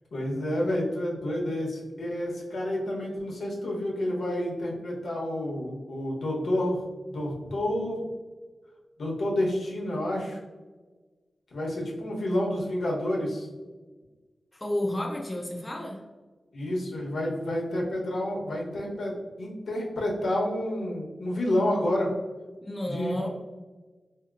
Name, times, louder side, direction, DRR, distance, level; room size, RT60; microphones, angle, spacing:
voice 1, 0.1-8.0 9.0-10.4 11.5-13.5 16.5-22.1 22.9-23.3, left 1 dB, 85° left, -2 dB, 1.0 m, -29 dB
voice 2, 14.5-16.0 22.6-23.3, left 1 dB, 20° left, -1 dB, 0.5 m, -31 dB
4.1 x 2.8 x 2.4 m, 1.3 s
wide cardioid pair, 130°, 0 cm